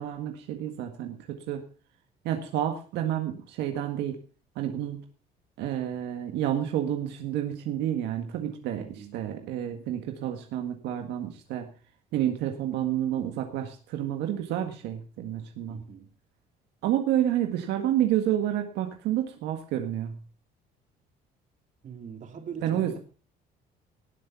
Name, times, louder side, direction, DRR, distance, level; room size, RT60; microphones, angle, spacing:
voice 1, 0.0-1.6 2.2-4.2 4.5-5.0 5.6-8.8 9.1-11.7 12.1-15.8 16.8-20.2 22.6-23.0, right 11 dB, 85° right, 1.8 m, -29 dB
voice 2, 8.8-9.2 15.7-16.1 21.8-23.0, right 7 dB, 45° right, 3.1 m, -42 dB
18.5 x 6.7 x 5.6 m
cardioid pair, 110°, 17 cm